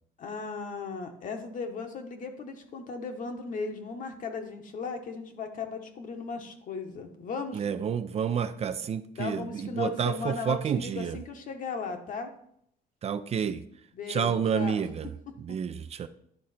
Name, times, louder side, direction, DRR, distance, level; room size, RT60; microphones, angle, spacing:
voice 1, 0.2-7.6 9.2-12.3 13.9-14.8 15.5-15.6, left 5 dB, 50° left, 5 dB, 1.2 m, -36 dB
voice 2, 7.5-11.2 13.0-13.6 14.1-15.1 15.4-16.1, right 7 dB, 40° right, 11 dB, 0.4 m, -29 dB
11.0 x 3.8 x 4.3 m, 0.70 s
cardioid pair, 110°, 17 cm